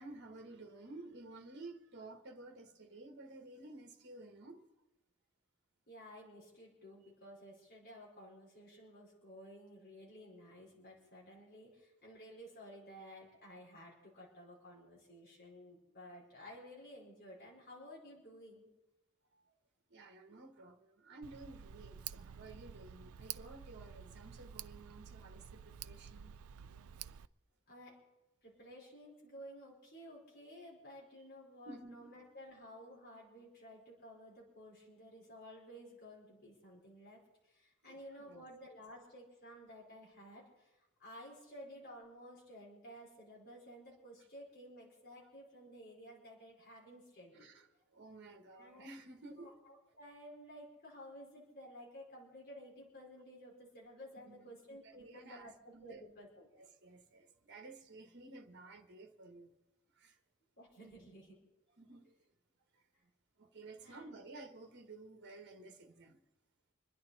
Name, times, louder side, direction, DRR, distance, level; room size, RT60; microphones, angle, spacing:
voice 1, 0.0-4.6 19.9-26.3 31.6-32.1 37.8-38.0 38.2-38.4 47.3-49.5 54.3-54.5 54.8-56.0 56.5-59.5 60.0-60.2 61.8-62.2 63.4-66.2, right 2 dB, 55° right, 1.6 m, -53 dB
voice 2, 5.9-18.7 27.7-28.0 28.4-47.5 48.6-48.9 49.3-56.5 60.6-61.4 63.8-64.2, equal, 45° left, 4.7 m, -54 dB
Tick, 21.2-27.3, right 9 dB, 85° right, 0.5 m, -50 dB
26.5 x 11.0 x 4.1 m
head